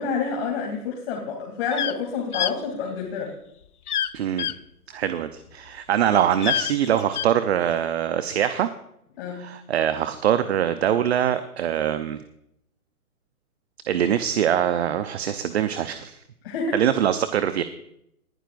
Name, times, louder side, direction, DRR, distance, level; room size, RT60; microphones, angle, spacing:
voice 1, 0.0-3.3 9.2-9.4 16.4-16.8, left 5 dB, 40° left, -1 dB, 3.0 m, -28 dB
sound 1, 1.7-1.9 2.3-2.5 3.9-4.1 4.4-4.5 6.3-7.3, left 10 dB, 75° left, 0.8 m, -26 dB
voice 2, 4.1-4.5 4.9-8.7 9.3-12.2 13.9-16.2 16.7-17.6, right 10 dB, 45° right, 11 dB, 0.8 m, -23 dB
20.0 x 11.0 x 2.5 m, 0.75 s
hypercardioid pair, 145°, 45 cm